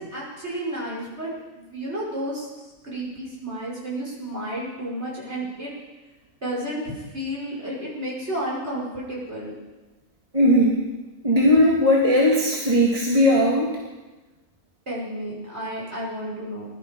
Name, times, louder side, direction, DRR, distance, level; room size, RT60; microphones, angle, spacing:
voice 1, 0.0-5.7 6.4-9.6 14.9-16.7, right 1 dB, 45° right, -5 dB, 6.1 m, -32 dB
voice 2, 10.3-10.8 11.2-13.8, equal, 25° right, -3 dB, 2.0 m, -18 dB
21.0 x 12.5 x 5.4 m, 1.2 s
omnidirectional pair, 1.6 m